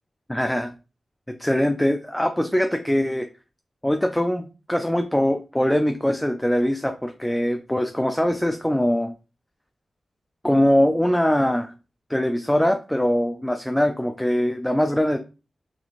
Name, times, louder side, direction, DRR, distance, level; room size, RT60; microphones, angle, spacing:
voice 1, 0.3-0.7 1.3-3.3 3.8-9.1 10.4-11.7 12.1-15.2, left 1 dB, 5° left, 6 dB, 0.4 m, -22 dB
6.1 x 3.5 x 2.5 m, 0.32 s
wide cardioid pair, 120°, 0 cm